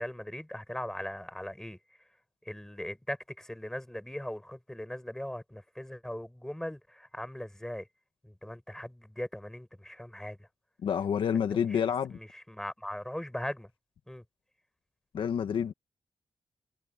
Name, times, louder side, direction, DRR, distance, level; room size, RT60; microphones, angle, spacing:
voice 1, 0.0-1.8 2.5-7.9 8.2-10.4 11.7-11.8 12.1-13.7 14.1-14.2, left 1 dB, 5° left, 7.3 m, -39 dB
voice 2, 10.8-12.2 15.1-15.7, left 8 dB, 85° left, 1.7 m, -28 dB
wide cardioid pair, 120°, 9 cm